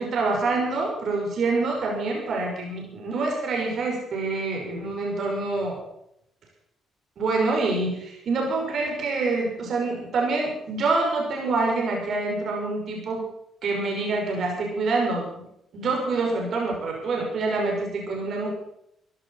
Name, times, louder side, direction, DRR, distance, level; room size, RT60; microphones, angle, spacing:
voice 1, 0.0-5.8 7.2-13.2 13.6-15.5 15.7-18.5, right 3 dB, 65° right, 0 dB, 5.9 m, -26 dB
15.5 x 11.5 x 7.3 m, 0.75 s
supercardioid pair, 65°, 0 cm